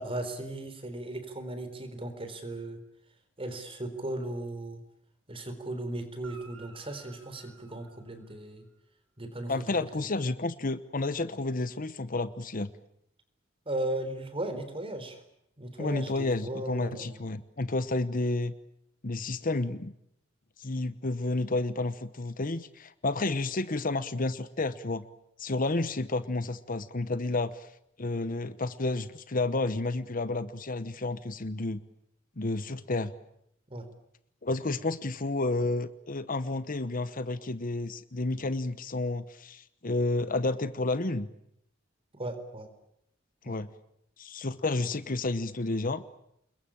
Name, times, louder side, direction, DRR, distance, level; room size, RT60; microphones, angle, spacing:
voice 1, 0.0-2.8 3.4-4.8 5.3-8.6 9.2-10.1 13.7-15.2 15.6-17.2 33.7-33.9 42.1-42.7 43.5-43.6, right 1 dB, 30° right, 9 dB, 4.1 m, -37 dB
Guitar, 6.2-8.7 12.6-12.7, right 4 dB, 85° right, 3.7 m, -55 dB
voice 2, 9.5-12.7 15.8-18.5 19.0-19.9 20.6-25.0 25.4-27.7 28.0-31.8 32.4-33.1 34.4-41.3 43.4-43.7 44.2-46.0, left 2 dB, 45° left, 13 dB, 1.0 m, -31 dB
28.0 x 22.0 x 8.9 m, 0.76 s
head